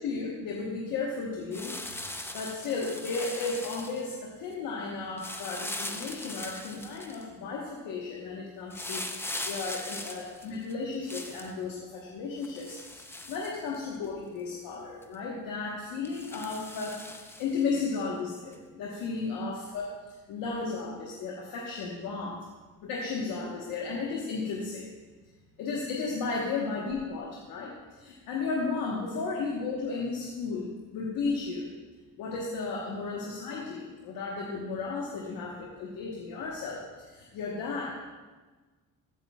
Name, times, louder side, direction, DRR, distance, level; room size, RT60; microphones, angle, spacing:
voice 1, 0.0-2.0 2.3-17.0 17.4-22.5 22.8-24.8 25.6-31.7 32.2-37.9, left 4 dB, 85° left, -2 dB, 1.2 m, -34 dB
sound 1, 1.5-4.1 5.2-7.2 8.7-11.5 12.4-14.1 14.5-14.6 15.0-15.1 16.0-17.7 18.5-18.6, left 1 dB, 5° left, 0.6 m, -40 dB
14.5 x 8.3 x 2.3 m, 1.3 s
cardioid pair, 105°, 34 cm